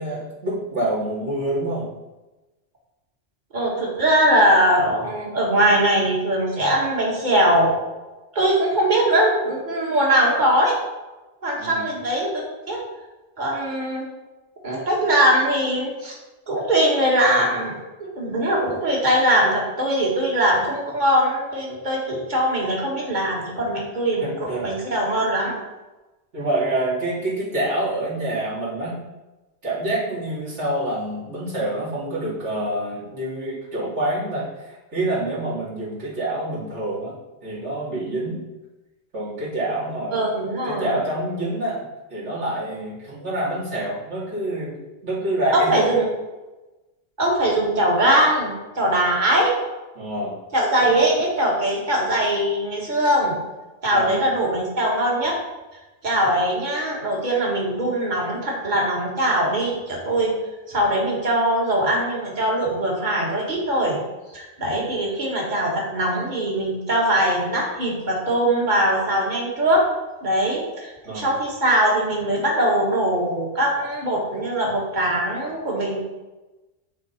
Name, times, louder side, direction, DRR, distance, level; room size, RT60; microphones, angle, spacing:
voice 1, 0.0-1.9 11.6-11.8 24.2-24.7 26.3-29.0 29.6-37.1 37.4-38.4 39.1-41.8 42.1-44.8 45.0-46.0 49.9-50.4 50.9-51.0 53.9-54.1 64.7-64.8 71.0-71.3, right 1 dB, 80° right, -10 dB, 3.1 m, -27 dB
voice 2, 3.5-7.8 8.3-10.7 11.4-12.4 12.7-12.8 13.4-14.0 14.6-16.1 16.5-17.7 18.0-25.5 40.1-40.9 45.5-46.0 47.2-49.5 50.5-53.4 53.8-55.4 56.0-60.4 60.7-64.0 64.3-69.9 70.2-76.0, right 1 dB, 40° right, -3 dB, 1.8 m, -21 dB
9.7 x 3.7 x 4.3 m, 1.1 s
omnidirectional pair, 1.2 m